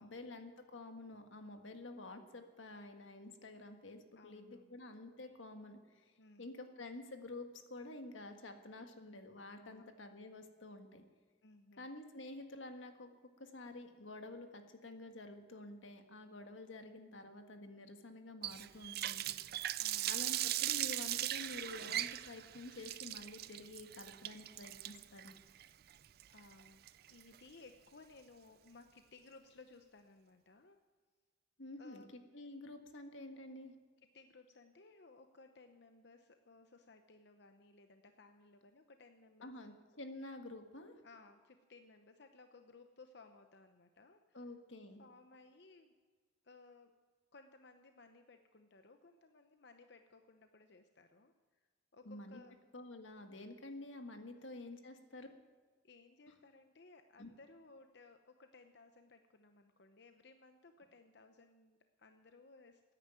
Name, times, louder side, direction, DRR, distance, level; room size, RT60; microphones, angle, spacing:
voice 1, 0.0-6.1 6.4-11.0 11.8-13.1 13.4-19.3 20.1-25.3 31.6-32.0 32.3-33.7 39.4-40.9 44.3-45.0 52.0-52.4 52.7-55.3 57.2-57.3, left 2 dB, 90° left, 6 dB, 1.6 m, -50 dB
voice 2, 4.2-4.8 6.2-6.5 9.6-9.8 11.4-11.9 19.8-20.2 26.3-26.8 27.1-30.8 31.8-32.1 34.1-39.9 41.0-44.5 45.0-45.9 46.4-46.9 47.3-51.6 51.9-52.6 54.3-54.6 55.8-62.8, left 3 dB, 60° left, 7 dB, 0.8 m, -60 dB
Water tap faucet, 18.4-27.4, right 13 dB, 55° right, 0.4 m, -39 dB
14.5 x 10.0 x 9.0 m, 1.4 s
head